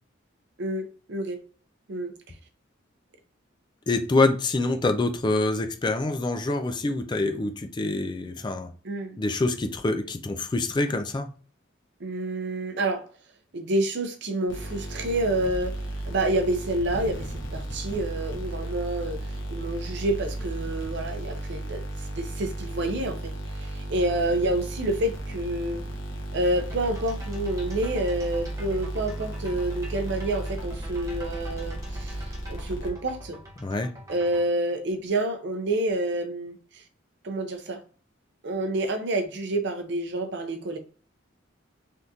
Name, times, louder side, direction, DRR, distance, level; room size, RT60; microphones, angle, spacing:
voice 1, 0.6-1.4 1.9-2.1 8.8-9.2 12.0-13.0 13.5-15.8 16.1-19.2 19.5-21.8 22.2-25.8 26.3-32.2 32.5-33.4 34.1-36.8 37.2-37.8 38.4-40.8, right 1 dB, 60° right, 0.6 m, -28 dB
voice 2, 3.9-8.7 9.2-11.3 33.6-33.9, left 2 dB, 25° left, 0.3 m, -26 dB
sound 1, 14.5-33.3, right 1 dB, 75° left, 1.0 m, -34 dB
sound 2, 26.6-34.5, equal, 15° right, 0.8 m, -46 dB
3.5 x 2.5 x 2.7 m
head